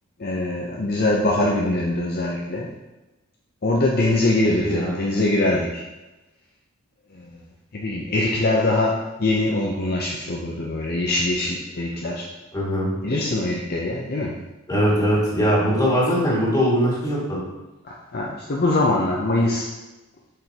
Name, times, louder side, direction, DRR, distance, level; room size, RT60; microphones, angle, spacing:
voice 1, 0.2-2.7 3.6-5.8 7.1-7.4 7.7-12.2 13.0-14.4 17.8-19.7, left 2 dB, 50° left, -2 dB, 0.6 m, -23 dB
voice 2, 4.6-5.0 12.5-12.9 14.7-17.4, equal, 20° left, -6 dB, 2.1 m, -21 dB
7.6 x 5.0 x 2.9 m, 1.1 s
head